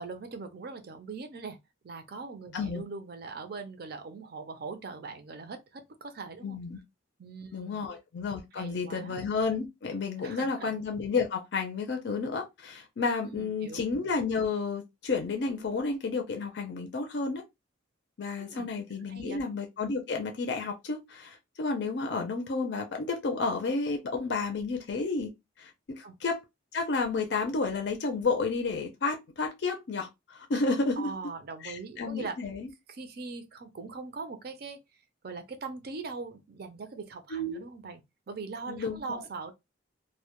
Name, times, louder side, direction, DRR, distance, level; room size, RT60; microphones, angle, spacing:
voice 1, 0.0-1.6 1.8-6.6 7.2-7.9 8.6-9.2 10.2-10.7 13.2-13.8 18.4-18.7 19.1-19.4 26.0-26.2 31.0-32.4 32.9-34.8 35.2-38.0 38.3-39.5, right 4 dB, 55° right, 0.5 m, -41 dB
voice 2, 6.4-6.8 7.5-17.4 18.2-25.3 25.6-26.4 26.7-31.1 31.6-32.7 37.3-37.7 38.7-39.2, left 4 dB, 65° left, 0.4 m, -31 dB
2.1 x 2.1 x 2.8 m
head